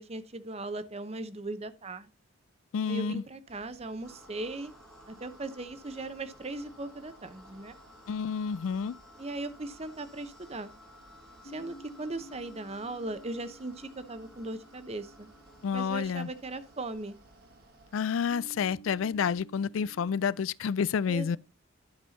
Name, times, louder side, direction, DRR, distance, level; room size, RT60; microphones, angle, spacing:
voice 1, 0.0-2.1 2.8-4.7 5.1-7.7 9.2-10.7 11.4-15.3 15.7-17.1 21.1-21.4, right 2 dB, 30° right, 0.8 m, -38 dB
voice 2, 2.7-3.2 8.1-9.0 15.6-16.3 17.9-21.4, left 6 dB, 90° left, 0.4 m, -29 dB
Mechanical fan, 3.5-18.1, right 2 dB, 50° right, 1.6 m, -59 dB
sound 1, 4.0-18.1, left 2 dB, 5° left, 1.1 m, -57 dB
sound 2, 11.4-16.9 18.3-20.5, right 2 dB, 65° left, 1.9 m, -53 dB
11.0 x 5.5 x 4.1 m
head